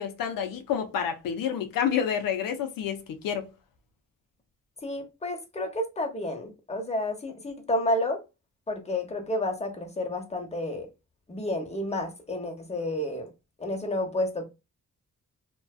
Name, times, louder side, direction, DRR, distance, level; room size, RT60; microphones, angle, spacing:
voice 1, 0.0-3.5, left 8 dB, 90° left, 0.5 m, -29 dB
voice 2, 4.8-8.2 8.7-10.9 11.3-13.3 13.6-14.4, left 1 dB, 20° left, 0.8 m, -30 dB
2.5 x 2.2 x 2.3 m
cardioid pair, 65°, 32 cm